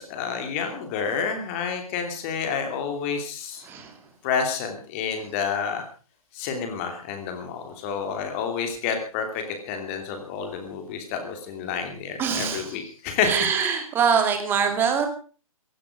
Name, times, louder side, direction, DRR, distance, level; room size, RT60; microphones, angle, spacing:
voice 1, 0.0-3.7 4.2-5.8 6.3-13.5, left 6 dB, 20° left, 6 dB, 2.8 m, -29 dB
voice 2, 3.6-4.0 12.2-12.8 13.2-15.1, right 6 dB, 10° right, 6 dB, 2.5 m, -24 dB
16.5 x 15.5 x 5.1 m, 0.38 s
figure-of-eight pair, 135°, 18 cm